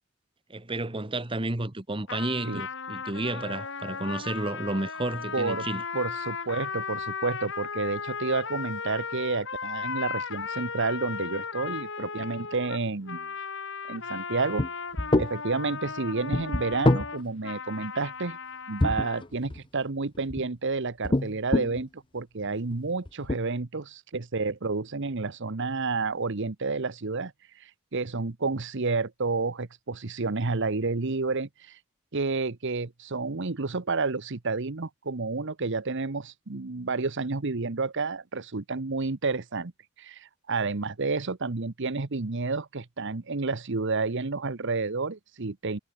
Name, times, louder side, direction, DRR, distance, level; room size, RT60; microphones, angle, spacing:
voice 1, 0.5-5.8, right 2 dB, 25° right, 1.3 m, -31 dB
sound 1, 2.1-19.2, left 5 dB, 60° left, 4.3 m, -36 dB
voice 2, 5.3-5.7 5.9-13.3 13.9-14.7 15.2-18.4 18.7-27.3 27.6-31.8 32.1-39.7 40.0-45.8, right 3 dB, 60° right, 1.0 m, -30 dB
sound 2, 14.6-14.7 15.0-15.3 16.3-17.1 18.8-19.6 20.1-20.5 21.0-21.8 22.5-22.7 23.1-23.4, left 1 dB, 25° left, 0.7 m, -24 dB
head